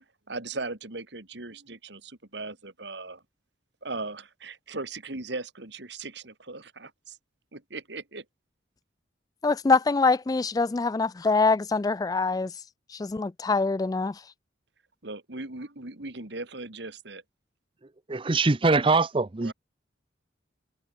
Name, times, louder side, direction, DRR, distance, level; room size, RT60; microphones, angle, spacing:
voice 1, 0.0-3.2 3.8-7.2 7.5-8.2 15.0-17.2 19.4-19.5, right 3 dB, 65° right, 2.4 m, -38 dB
voice 2, 9.4-12.5 12.9-14.2, left 3 dB, 20° left, 0.3 m, -24 dB
voice 3, 18.1-19.5, right 3 dB, 25° right, 0.6 m, -23 dB
head